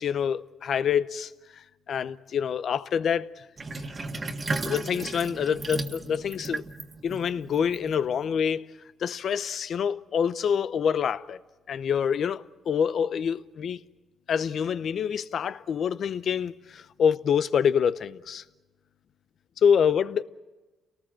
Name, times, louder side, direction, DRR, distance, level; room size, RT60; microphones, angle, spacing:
voice 1, 0.0-3.4 3.7-3.8 4.6-6.6 7.0-8.6 9.0-11.4 11.7-13.8 14.3-18.4 19.6-20.2, left 7 dB, 60° left, 0.7 m, -26 dB
Sink (filling or washing), 3.6-8.3, right 3 dB, 30° right, 1.7 m, -35 dB
29.5 x 19.0 x 7.6 m
cardioid pair, 90°, 0 cm